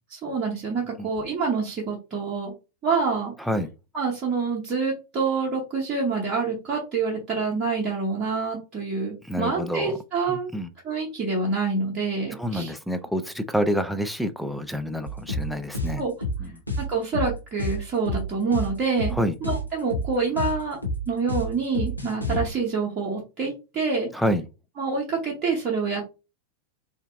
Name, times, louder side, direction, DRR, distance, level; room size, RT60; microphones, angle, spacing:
voice 1, 0.1-2.5 2.8-3.3 3.9-10.5 10.8-12.7 16.0-16.1 16.8-20.8 21.1-24.1 24.8-26.0, right 4 dB, 30° right, -3 dB, 0.8 m, -27 dB
voice 2, 3.4-3.7 9.2-10.0 10.3-10.7 12.3-16.0 16.4-16.6 19.1-19.4 24.1-24.5, equal, ahead, 9 dB, 0.3 m, -28 dB
sound 1, 15.1-22.4, equal, 85° left, 0.6 m, -29 dB
2.7 x 2.5 x 2.4 m, 0.29 s
figure-of-eight pair, 90°, 0 cm